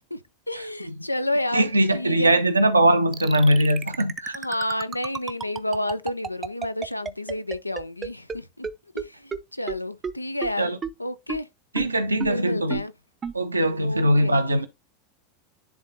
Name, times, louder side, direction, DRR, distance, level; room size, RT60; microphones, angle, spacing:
voice 1, 0.5-2.4 4.3-8.7 8.9-10.7 11.0-11.5 12.3-12.9 13.8-14.4, left 1 dB, 90° left, 0.5 m, -30 dB
voice 2, 1.5-4.3 10.6-10.8 11.7-12.8 13.3-14.7, right 1 dB, 85° right, 0.8 m, -21 dB
sound 1, 3.1-8.4 8.6-8.7 9.0-9.1 9.3-9.4 9.7-9.8 10.0-10.1 10.4-10.5 10.8-10.9 11.3-11.4 11.8-11.9 12.2-12.3 12.7-12.8 13.2-13.3, right 6 dB, 25° right, 0.6 m, -30 dB
10.5 x 3.7 x 2.7 m
figure-of-eight pair, 80°, 0 cm